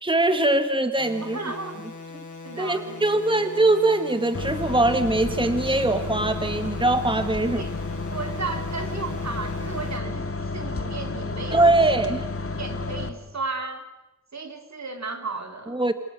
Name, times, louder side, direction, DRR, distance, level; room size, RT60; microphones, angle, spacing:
voice 1, 0.0-1.4 2.6-7.7 11.5-12.2 15.7-15.9, right 2 dB, 15° right, 8 dB, 1.7 m, -22 dB
sound 1, 1.0-10.0, left 3 dB, 90° left, 4.9 m, -41 dB
voice 2, 1.3-1.9 2.4-3.4 7.6-7.7 8.1-11.7 12.6-13.9 14.3-15.8, right 3 dB, 65° right, 5 dB, 3.7 m, -34 dB
sound 2, 4.3-13.1, left 3 dB, 50° left, 2.3 m, -31 dB
28.5 x 28.0 x 6.7 m, 0.94 s
wide cardioid pair, 90°, 29 cm